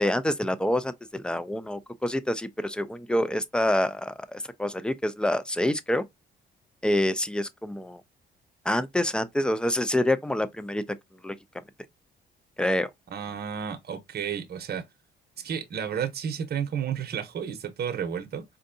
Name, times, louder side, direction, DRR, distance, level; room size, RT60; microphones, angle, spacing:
voice 1, 0.0-6.0 6.8-8.0 8.6-10.8 11.2-11.4 12.6-12.9, left 1 dB, 5° left, 0.4 m, -27 dB
voice 2, 13.1-14.8 15.4-18.4, right 8 dB, 50° right, 0.8 m, -32 dB
4.4 x 2.7 x 2.6 m
cardioid pair, 90°, 20 cm